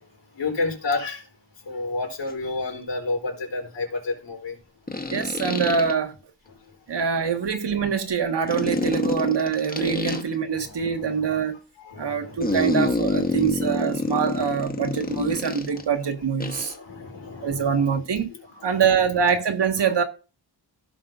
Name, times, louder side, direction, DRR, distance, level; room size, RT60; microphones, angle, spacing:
voice 1, 0.4-1.2 1.7-4.6 6.5-6.6 8.4-8.5 10.5-11.4 11.8-12.9 13.3-13.7 14.4-14.5 15.0-15.2 15.7-15.8 16.5-18.0 18.3-19.4, left 3 dB, 80° left, 3.5 m, -32 dB
sound 1, 2.3-2.4 4.9-5.9 8.5-10.2 12.4-15.8 16.4-16.8, left 2 dB, 20° left, 1.2 m, -27 dB
voice 2, 5.1-6.1 6.9-11.6 12.0-16.7 17.4-18.3 18.6-20.0, right 6 dB, 70° right, 1.6 m, -24 dB
15.5 x 5.8 x 2.6 m
wide cardioid pair, 120°, 42 cm